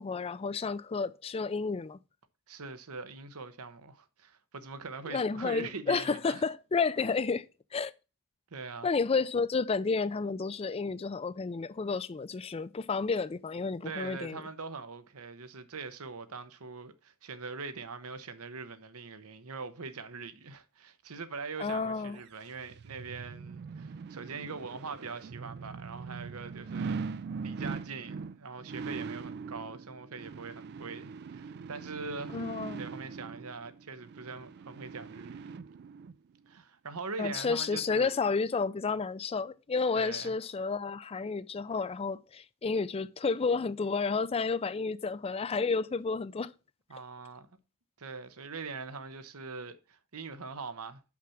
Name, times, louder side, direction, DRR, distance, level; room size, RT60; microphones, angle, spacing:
voice 1, 0.0-2.0 5.1-7.5 7.7-7.9 8.8-14.4 21.6-22.2 32.3-32.8 37.2-46.5, left 4 dB, 25° left, 0.4 m, -31 dB
voice 2, 2.5-6.4 8.5-8.9 13.8-27.1 27.4-32.4 32.8-35.6 36.5-38.1 39.9-40.3 46.9-47.5 48.0-51.0, right 4 dB, 80° right, 1.0 m, -42 dB
sound 1, 22.2-36.1 36.6-36.7, right 5 dB, 50° right, 0.3 m, -41 dB
5.9 x 5.8 x 6.3 m
head